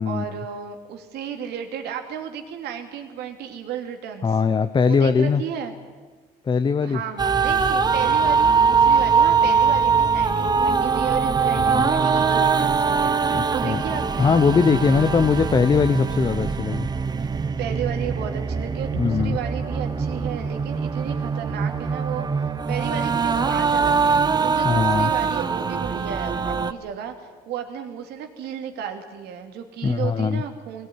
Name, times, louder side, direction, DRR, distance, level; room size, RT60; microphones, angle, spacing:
voice 1, 0.0-4.4 4.8-5.7 6.8-13.2 13.5-14.3 17.6-30.9, right 8 dB, 80° right, 5 dB, 2.7 m, -33 dB
voice 2, 4.2-5.4 6.5-7.0 11.6-11.8 13.3-13.8 14.2-16.9 18.9-19.4 24.6-25.1 29.8-30.4, left 5 dB, 30° left, 9 dB, 0.8 m, -20 dB
sound 1, 7.2-26.7, right 5 dB, 25° right, 1.0 m, -22 dB
20.5 x 18.0 x 9.6 m, 1.4 s
cardioid pair, 110°, 17 cm